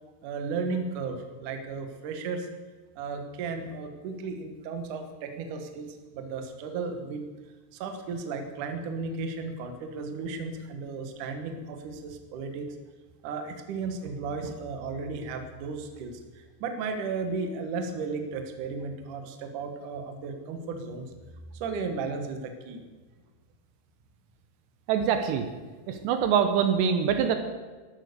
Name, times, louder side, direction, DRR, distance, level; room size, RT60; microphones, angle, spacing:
voice 1, 0.2-2.5 3.0-7.2 7.7-12.8 13.2-21.0 21.5-22.8, right 4 dB, 60° right, 6 dB, 2.4 m, -34 dB
voice 2, 24.9-25.5 25.9-27.4, right 7 dB, 80° right, 7 dB, 2.9 m, -24 dB
13.5 x 11.5 x 6.9 m, 1.4 s
omnidirectional pair, 5.1 m